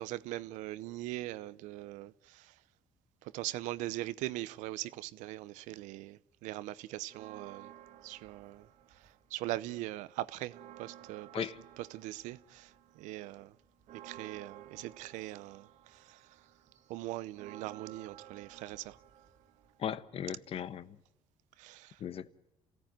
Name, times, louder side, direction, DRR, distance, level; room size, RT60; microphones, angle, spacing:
voice 1, 0.0-2.5 3.2-7.7 8.0-8.7 9.3-11.5 11.8-13.5 14.0-16.2 16.9-19.0 21.6-22.0, right 16 dB, 90° right, 0.8 m, -41 dB
sound 1, 7.1-9.5 9.8-20.3, right 11 dB, 75° right, 2.3 m, -55 dB
voice 2, 19.8-21.0 22.0-22.3, left 9 dB, 50° left, 1.2 m, -37 dB
28.0 x 17.0 x 9.1 m
cardioid pair, 105°, 12 cm